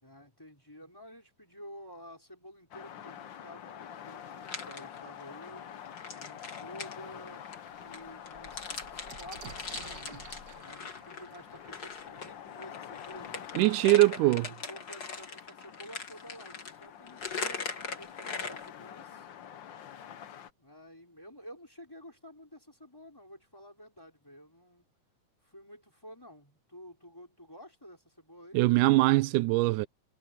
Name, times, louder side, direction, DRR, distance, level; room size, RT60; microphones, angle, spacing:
voice 1, 0.0-5.8 6.1-7.5 7.8-13.5 14.6-19.3 20.5-24.9 25.4-28.6, equal, 5° left, 4.5 m, -51 dB
sound 1, 2.7-20.5, left 9 dB, 80° left, 1.0 m, -47 dB
sound 2, 4.4-5.4 5.8-12.3 12.6-18.7, left 4 dB, 35° left, 2.4 m, -41 dB
sound 3, 6.7-6.8 7.2-7.3 7.6-13.2 14.1-14.2 14.5-15.1, right 5 dB, 40° right, 1.7 m, -51 dB
voice 2, 13.6-14.5 28.5-29.9, right 19 dB, 85° right, 2.1 m, -22 dB
omnidirectional pair, 3.6 m